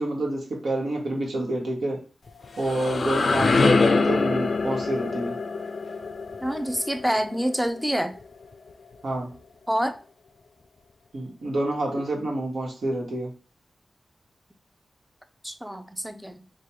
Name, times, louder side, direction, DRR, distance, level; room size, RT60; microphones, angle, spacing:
voice 1, 0.0-2.0 2.6-5.4 9.0-9.3 11.1-13.3, right 1 dB, 80° right, -1 dB, 1.2 m, -28 dB
sound 1, 2.3-8.0, left 4 dB, 70° left, 0.4 m, -24 dB
voice 2, 6.4-8.1 9.7-10.0 15.4-16.4, equal, 5° right, 8 dB, 0.4 m, -27 dB
3.3 x 2.2 x 4.3 m, 0.36 s
cardioid pair, 70°, 0 cm